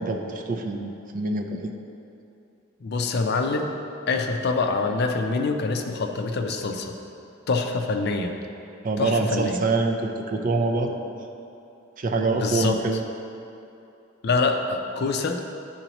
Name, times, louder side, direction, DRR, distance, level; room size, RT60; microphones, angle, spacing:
voice 1, 0.0-1.7 8.8-11.3 12.0-13.0, right 3 dB, 45° right, 3 dB, 0.5 m, -25 dB
voice 2, 2.8-3.7 4.1-6.9 7.5-8.3 9.0-9.6 12.4-12.8 14.2-15.4, left 3 dB, 55° left, 4 dB, 0.5 m, -25 dB
10.5 x 3.9 x 2.9 m, 2.7 s
head